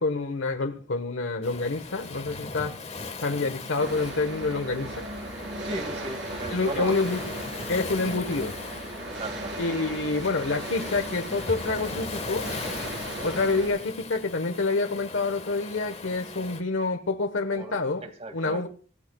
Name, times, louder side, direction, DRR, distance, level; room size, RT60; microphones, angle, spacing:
voice 1, 0.0-2.7 3.2-5.1 6.5-7.2 7.7-8.5 9.6-12.5 13.2-18.1 18.3-18.7, left 3 dB, 85° left, 1.2 m, -27 dB
Waves surf, 1.4-16.6, left 3 dB, 35° left, 1.4 m, -39 dB
sound 1, 3.8-13.7, right 1 dB, 65° right, 4.7 m, -37 dB
voice 2, 5.6-7.0 7.6-7.7 8.1-8.2 9.2-9.5 17.5-18.6, right 1 dB, 35° right, 2.2 m, -36 dB
25.0 x 15.0 x 2.3 m
head